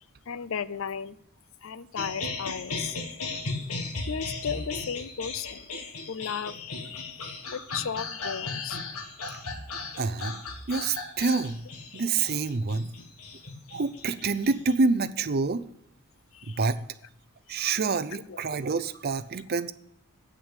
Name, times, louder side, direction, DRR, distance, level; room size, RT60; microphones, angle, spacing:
voice 1, 0.3-1.2 1.6-3.0 4.1-5.7 6.1-7.3 7.5-8.8 11.9-12.0 13.0-13.1 16.3-16.6 17.5-17.6 18.3-18.4, left 7 dB, 65° left, 16 dB, 0.5 m, -35 dB
sound 1, 2.0-14.7, left 3 dB, 85° left, 1.5 m, -37 dB
voice 2, 10.0-10.4 10.7-11.6 11.9-12.9 13.7-15.6 16.5-16.8 17.5-19.7, right 4 dB, 45° right, 13 dB, 0.6 m, -27 dB
9.0 x 6.3 x 8.2 m, 0.74 s
head